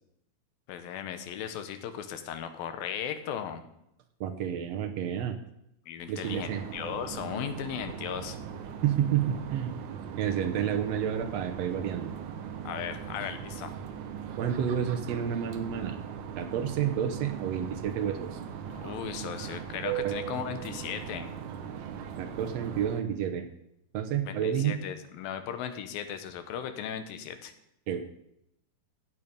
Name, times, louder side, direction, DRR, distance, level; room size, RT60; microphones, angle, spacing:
voice 1, 0.7-3.6 5.9-8.4 12.6-13.8 18.7-21.3 24.3-27.5, left 9 dB, 80° left, 9 dB, 2.8 m, -37 dB
voice 2, 4.2-5.4 6.1-6.6 8.8-9.8 10.2-12.1 14.4-16.0 16.4-18.4 20.0-20.1 22.2-23.5 23.9-24.8 27.9-28.0, right 9 dB, 90° right, 6 dB, 1.4 m, -30 dB
sound 1, 6.2-23.0, right 8 dB, 70° right, 2.1 m, -39 dB
14.0 x 8.7 x 5.3 m, 0.79 s
omnidirectional pair, 4.2 m